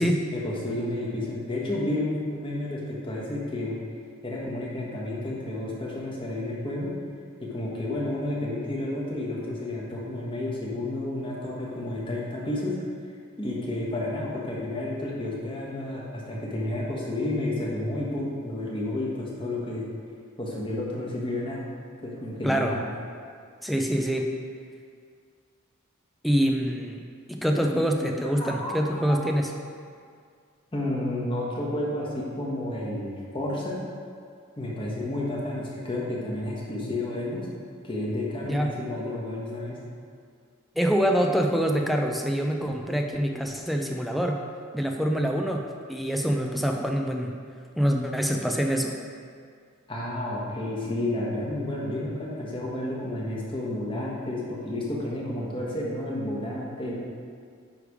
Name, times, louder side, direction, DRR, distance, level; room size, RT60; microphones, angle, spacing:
voice 1, 0.3-3.8 4.2-6.9 7.4-12.8 13.4-19.9 20.4-21.6 22.0-22.8 28.2-28.8 29.1-29.2 30.7-33.8 34.6-37.5 37.8-39.8 49.9-56.9, left 1 dB, 25° left, -5 dB, 1.3 m, -31 dB
voice 2, 22.4-22.8 23.6-24.3 26.2-27.0 27.3-29.5 38.5-38.7 40.8-44.4 44.7-45.6 45.9-47.4 47.8-49.0, equal, ahead, 2 dB, 0.4 m, -25 dB
9.9 x 3.3 x 4.9 m, 2.2 s
head